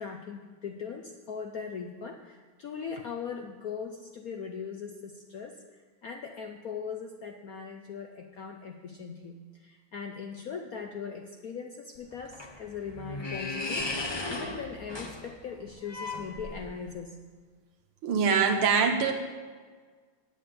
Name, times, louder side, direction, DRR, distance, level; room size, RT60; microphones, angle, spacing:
voice 1, 0.0-17.2, left 6 dB, 70° left, 4 dB, 0.8 m, -40 dB
sound 1, 12.0-16.9, left 2 dB, 45° left, 0.3 m, -36 dB
voice 2, 18.0-19.1, right 5 dB, 80° right, 4 dB, 2.0 m, -23 dB
9.5 x 7.8 x 8.5 m, 1.5 s
omnidirectional pair, 2.3 m